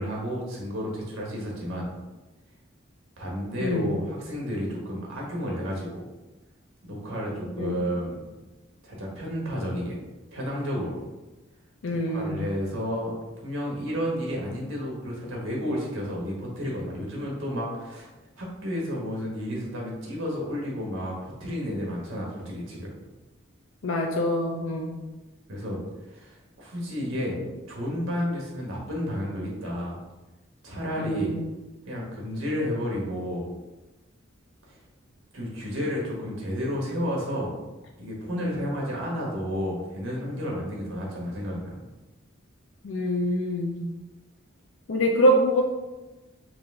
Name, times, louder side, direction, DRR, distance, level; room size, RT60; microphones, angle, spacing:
voice 1, 0.0-1.9 3.2-6.1 6.8-8.2 8.8-10.0 10.3-11.0 11.9-13.1 13.4-18.1 18.4-22.9 25.5-25.8 26.1-27.4 27.7-30.0 30.6-31.3 31.9-33.5 35.3-37.5 38.0-41.8, equal, 85° right, -2 dB, 1.3 m, -31 dB
voice 2, 3.6-3.9 7.6-7.8 11.8-12.4 23.8-25.0 31.0-31.4 42.8-43.9 44.9-45.6, equal, 80° left, 0 dB, 0.5 m, -25 dB
4.7 x 2.5 x 3.6 m, 1.1 s
head